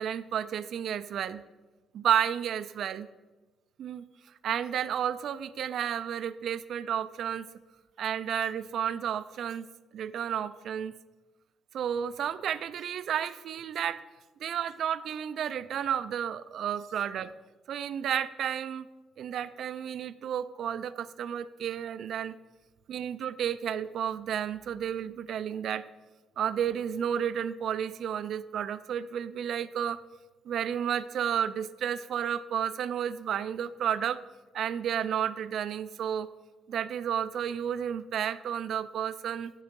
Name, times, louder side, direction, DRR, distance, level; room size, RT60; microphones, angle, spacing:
voice 1, 0.0-1.4 1.9-3.1 3.8-4.0 4.4-7.5 8.0-9.7 9.9-10.9 11.7-14.0 14.4-17.3 17.7-18.9 19.2-22.4 22.9-25.8 26.4-30.0 30.5-34.2 34.5-36.3 36.7-39.5, right 9 dB, 70° right, 13 dB, 0.4 m, -32 dB
11.0 x 4.7 x 5.2 m, 1.2 s
cardioid pair, 90°, 0 cm